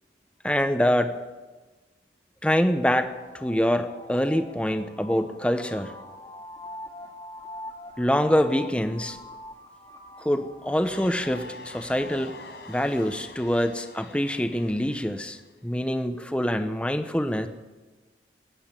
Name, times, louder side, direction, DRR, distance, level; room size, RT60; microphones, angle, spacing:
voice 1, 0.4-1.2 2.4-5.9 8.0-9.2 10.2-12.3 12.7-17.5, equal, 5° left, 8 dB, 0.8 m, -25 dB
sound 1, 2.9-11.3, left 1 dB, 20° left, 1.9 m, -44 dB
sound 2, 10.8-15.5, left 2 dB, 70° left, 4.6 m, -45 dB
15.0 x 10.5 x 8.9 m, 1.2 s
head